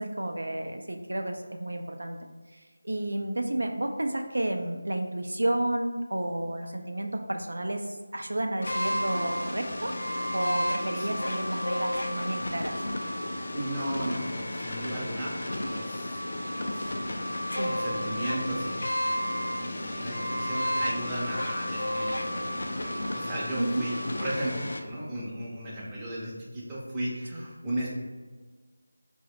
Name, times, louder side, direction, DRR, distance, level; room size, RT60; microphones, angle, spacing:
voice 1, 0.0-9.9 10.3-12.8 17.5-17.7 23.6-23.9 27.3-27.4, right 1 dB, 75° right, 4 dB, 0.3 m, -31 dB
sound 1, 8.6-24.8, left 1 dB, 60° left, 0.4 m, -32 dB
voice 2, 13.5-15.3 15.6-16.2 16.5-27.9, right 1 dB, 10° right, -8 dB, 0.6 m, -36 dB
3.9 x 2.0 x 2.8 m, 1.4 s
figure-of-eight pair, 165°, 0 cm